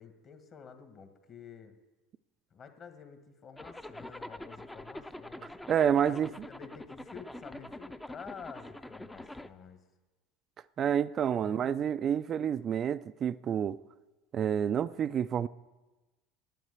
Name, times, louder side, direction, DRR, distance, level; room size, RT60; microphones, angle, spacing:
voice 1, 0.0-1.8 2.5-5.5 6.1-9.8 11.4-11.7, left 6 dB, 45° left, 1.6 m, -50 dB
Zipper (clothing), 3.6-9.5, left 1 dB, 10° left, 0.5 m, -45 dB
voice 2, 5.7-6.5 10.8-13.8 14.3-15.5, right 8 dB, 40° right, 0.3 m, -29 dB
9.2 x 8.5 x 8.2 m
hypercardioid pair, 80°, 0 cm